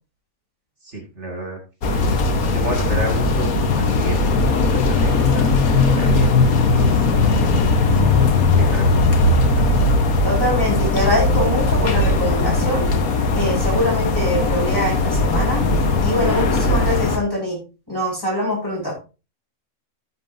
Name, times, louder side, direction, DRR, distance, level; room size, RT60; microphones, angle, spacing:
voice 1, 0.8-2.2 2.5-4.4 4.7-6.4 6.8-9.0 9.4-9.7, right 1 dB, 55° right, 1 dB, 2.6 m, -31 dB
sound 1, 1.8-17.2, left 3 dB, 90° left, 1.6 m, -18 dB
voice 2, 10.2-12.8 13.3-15.6 16.0-17.6 17.9-19.0, equal, 15° left, -5 dB, 5.5 m, -23 dB
14.0 x 7.6 x 2.6 m, 0.30 s
omnidirectional pair, 1.4 m